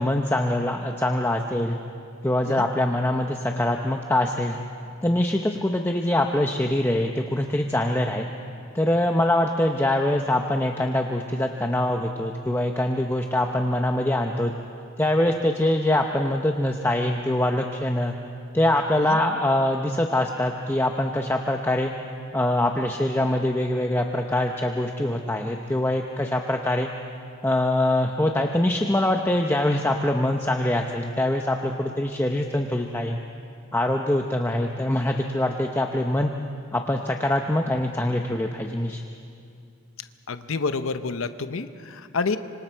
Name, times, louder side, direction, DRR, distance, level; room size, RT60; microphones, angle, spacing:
voice 1, 0.0-1.8 2.2-4.6 5.0-8.3 8.7-14.5 15.0-18.1 18.5-21.9 22.3-26.9 27.4-33.2 33.7-36.3 36.7-39.0, left 1 dB, 10° left, 3 dB, 0.7 m, -24 dB
voice 2, 40.3-42.4, left 4 dB, 70° left, 10 dB, 0.8 m, -28 dB
26.0 x 25.5 x 4.5 m, 2.4 s
head